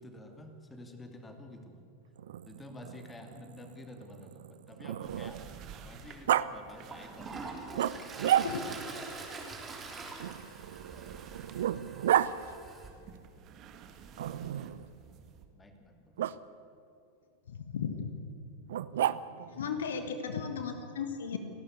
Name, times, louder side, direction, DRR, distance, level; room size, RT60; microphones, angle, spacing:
voice 1, 0.0-1.8 2.5-7.6 10.9-11.2 14.1-14.5 15.0-15.2 15.5-16.4 19.5-19.8, left 1 dB, 15° left, 5 dB, 2.6 m, -50 dB
Growling, 2.2-5.6 6.3-6.5 7.7-8.8 10.2-12.3 14.2-14.9 16.2-16.3 18.7-19.5, right 11 dB, 60° right, 0.6 m, -32 dB
sound 1, 5.0-15.5, right 7 dB, 35° right, 1.8 m, -53 dB
Toilet flush, 6.1-6.2 6.7-12.9, right 3 dB, 20° right, 3.5 m, -44 dB
voice 2, 17.5-18.1 19.4-21.4, left 6 dB, 65° left, 7 dB, 1.7 m, -36 dB
29.5 x 12.5 x 8.2 m, 2.6 s
figure-of-eight pair, 90°, 0 cm